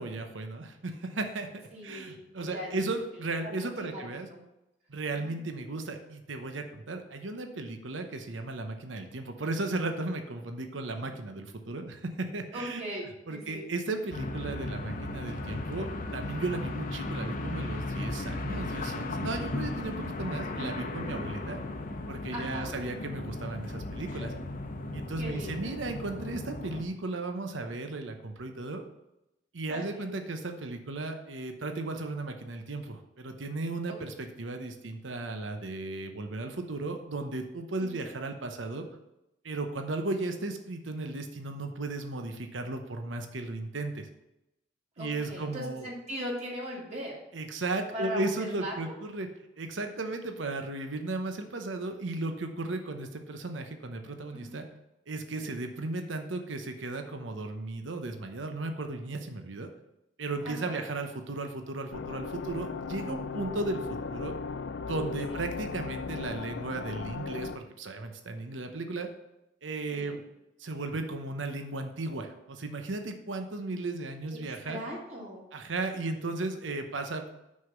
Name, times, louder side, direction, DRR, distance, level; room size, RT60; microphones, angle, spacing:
voice 1, 0.0-4.3 4.9-12.8 13.3-21.6 22.1-24.3 24.9-28.8 29.5-38.9 39.4-44.1 45.0-45.9 47.3-49.3 49.6-54.6 55.1-59.7 60.2-64.3 64.8-69.1 69.6-70.2 70.6-74.8 75.5-77.3, right 2 dB, 90° right, 6 dB, 0.9 m, -35 dB
voice 2, 1.7-2.9 3.4-4.0 4.3-4.4 5.1-5.3 12.5-13.7 22.3-22.7 25.2-25.7 29.7-30.3 37.8-38.0 45.0-47.2 47.9-48.2 48.6-48.9 54.3-54.6 55.4-55.6 60.4-60.8 65.3-65.5 69.9-70.2 74.5-75.4, equal, 40° right, -3 dB, 2.2 m, -39 dB
sound 1, 14.1-26.8, left 2 dB, 45° left, 0.9 m, -36 dB
sound 2, 61.9-67.6, left 4 dB, 70° left, 0.4 m, -37 dB
6.4 x 5.7 x 7.1 m, 0.90 s
head